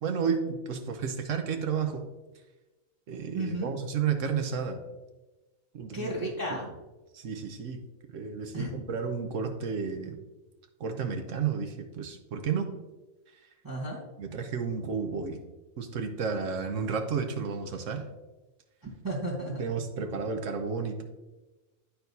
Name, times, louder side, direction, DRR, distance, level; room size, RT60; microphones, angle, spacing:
voice 1, 0.0-2.0 3.1-4.8 5.7-6.1 6.5-6.6 7.1-7.8 8.1-10.2 10.8-12.7 14.2-15.4 15.8-18.0 19.6-21.0, right 6 dB, 65° right, 6 dB, 1.1 m, -32 dB
voice 2, 3.3-3.7 5.9-6.7 8.5-8.7 13.6-14.0 18.8-19.6, right 1 dB, 15° right, -5 dB, 1.2 m, -33 dB
11.5 x 4.4 x 2.7 m, 1.1 s
omnidirectional pair, 1.5 m